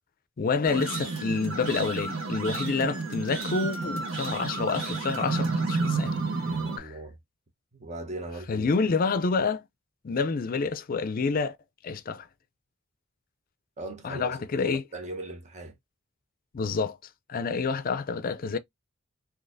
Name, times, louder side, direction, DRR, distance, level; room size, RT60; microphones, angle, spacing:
voice 1, 0.4-6.1 6.8-7.0 8.5-9.6 10.0-11.6 11.8-12.3 14.0-14.8 16.5-17.0 17.3-18.6, left 4 dB, 45° left, 0.4 m, -28 dB
sound 1, 0.6-6.8, right 3 dB, 80° right, 1.1 m, -30 dB
voice 2, 6.4-7.2 7.7-8.7 13.8-15.7, right 2 dB, 35° right, 1.0 m, -39 dB
4.0 x 2.8 x 2.6 m
head